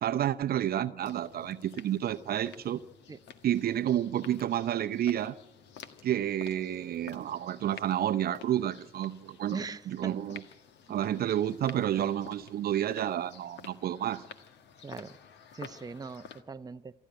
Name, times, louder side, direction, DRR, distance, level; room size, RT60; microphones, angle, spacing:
voice 1, 0.0-2.8 3.4-5.4 6.0-9.6 9.9-10.4 10.9-14.2, right 11 dB, 50° right, 0.7 m, -30 dB
sound 1, 1.0-16.4, left 7 dB, 60° left, 1.5 m, -51 dB
voice 2, 9.5-10.1 14.8-15.2 15.5-16.9, right 4 dB, 20° right, 0.8 m, -40 dB
27.5 x 11.0 x 9.1 m
hypercardioid pair, 50°, 21 cm